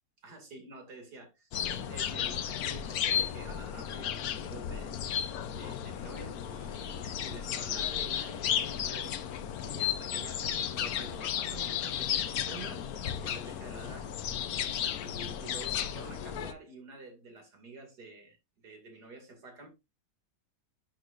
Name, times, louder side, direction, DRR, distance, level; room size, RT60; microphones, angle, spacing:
voice 1, 0.2-5.0 5.5-9.2 9.6-12.9 13.2-14.1 15.0-18.4 18.6-19.7, right 3 dB, 65° right, 3.0 m, -48 dB
sound 1, 1.5-16.5, left 9 dB, 65° left, 1.2 m, -34 dB
10.5 x 6.5 x 2.5 m
omnidirectional pair, 1.8 m